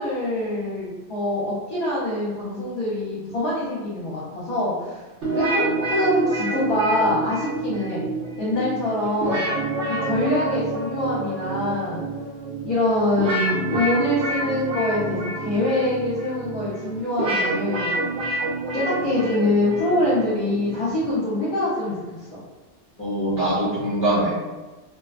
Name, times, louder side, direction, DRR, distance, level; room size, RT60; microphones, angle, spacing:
voice 1, 0.0-5.0 5.4-5.6 5.9-8.0 8.4-9.4 9.8-12.0 12.6-17.9 18.7-21.9, left 1 dB, 50° left, -9 dB, 0.9 m, -24 dB
sound 1, 5.2-21.1, right 2 dB, 85° right, 1.0 m, -28 dB
voice 2, 23.0-24.3, right 1 dB, 15° left, -11 dB, 0.6 m, -22 dB
2.5 x 2.3 x 2.3 m, 1.2 s
omnidirectional pair, 1.2 m